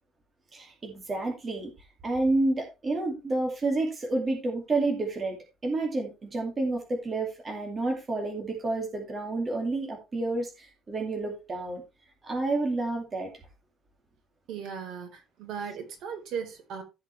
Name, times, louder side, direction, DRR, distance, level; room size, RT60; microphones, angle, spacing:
voice 1, 0.5-1.7 2.0-5.4 5.6-11.8 12.2-13.3, right 2 dB, 20° right, 2.5 m, -29 dB
voice 2, 14.5-16.8, right 7 dB, 60° right, 4.1 m, -37 dB
15.5 x 5.9 x 3.3 m
cardioid pair, 170°, 0 cm